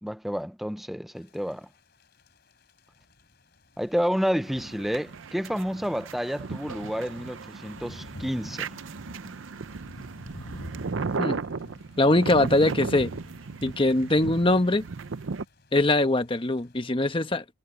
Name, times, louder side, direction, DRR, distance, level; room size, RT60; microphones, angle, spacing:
voice 1, 0.0-1.7 3.8-8.7, equal, ahead, 0.7 m, -30 dB
Thunder / Rain, 1.2-16.8, equal, 60° left, 4.1 m, -50 dB
sound 1, 4.4-15.4, right 4 dB, 85° right, 0.6 m, -36 dB
voice 2, 12.0-13.1 13.6-14.8 15.7-17.4, left 2 dB, 25° left, 1.3 m, -22 dB
head